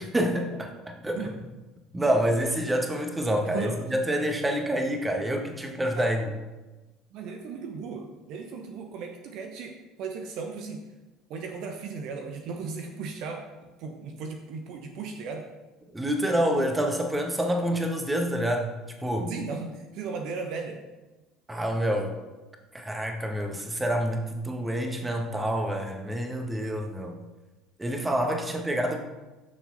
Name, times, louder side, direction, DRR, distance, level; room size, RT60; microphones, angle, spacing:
voice 1, 0.0-1.3 1.9-6.2 15.9-18.7 19.0-19.4 21.5-22.2 22.7-27.2 27.8-29.0, equal, 15° right, 4 dB, 1.7 m, -27 dB
voice 2, 3.5-3.8 6.0-6.1 7.1-10.8 11.3-13.4 13.8-15.5 19.3-20.8, right 5 dB, 55° right, 4 dB, 1.2 m, -36 dB
15.0 x 6.7 x 4.2 m, 1.1 s
figure-of-eight pair, 60°, 0 cm